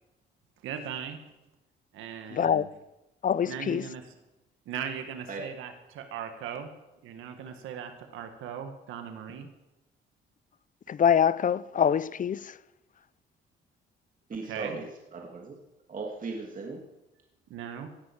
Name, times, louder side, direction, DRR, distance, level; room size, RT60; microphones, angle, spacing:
voice 1, 0.6-1.2 1.9-2.7 3.4-4.0 4.6-6.7 7.0-9.5 14.4-14.8 17.5-17.9, right 8 dB, 90° right, 1.8 m, -38 dB
voice 2, 2.3-2.7 3.2-3.9 10.9-12.6, left 8 dB, 40° left, 0.6 m, -25 dB
voice 3, 14.3-15.6 15.9-16.8, right 4 dB, 40° right, 2.5 m, -37 dB
17.0 x 8.3 x 7.9 m
cardioid pair, 90°, 20 cm